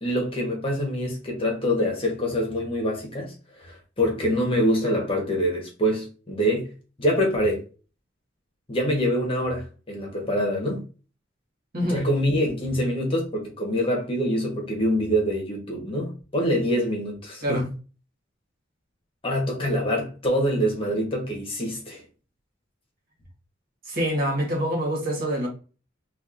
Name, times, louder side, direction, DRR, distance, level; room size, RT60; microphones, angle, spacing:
voice 1, 0.0-6.7 7.0-7.6 8.7-10.9 11.9-17.6 19.2-22.0, equal, 30° left, 1.2 m, -25 dB
voice 2, 23.8-25.5, equal, 50° right, 1.5 m, -25 dB
4.3 x 2.6 x 2.5 m
head